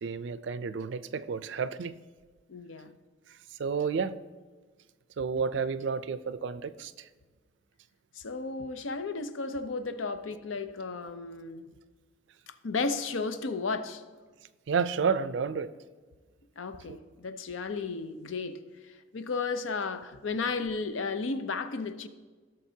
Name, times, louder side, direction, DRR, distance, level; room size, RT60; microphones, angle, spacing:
voice 1, 0.0-1.9 3.6-4.2 5.2-6.9 14.7-15.7, right 5 dB, 70° right, 0.4 m, -30 dB
voice 2, 2.5-2.9 8.2-11.7 12.6-14.0 16.6-18.6 19.1-22.1, left 4 dB, 90° left, 0.6 m, -34 dB
16.0 x 6.5 x 2.8 m
head